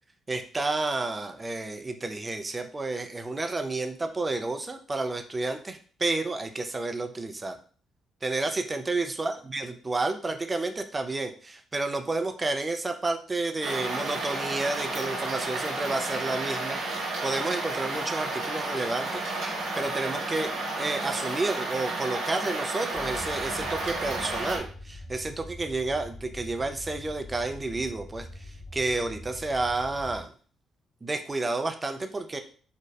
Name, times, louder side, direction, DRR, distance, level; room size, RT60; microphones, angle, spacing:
voice 1, 0.3-7.6 8.2-19.4 19.8-20.5 20.8-30.3 31.0-32.4, right 2 dB, 25° right, 6 dB, 0.3 m, -30 dB
sound 1, 13.6-24.6, right 2 dB, 90° right, 0.7 m, -32 dB
sound 2, 22.9-30.2, left 1 dB, 35° left, 1.1 m, -43 dB
2.6 x 2.1 x 2.2 m, 0.41 s
cardioid pair, 90°, 0 cm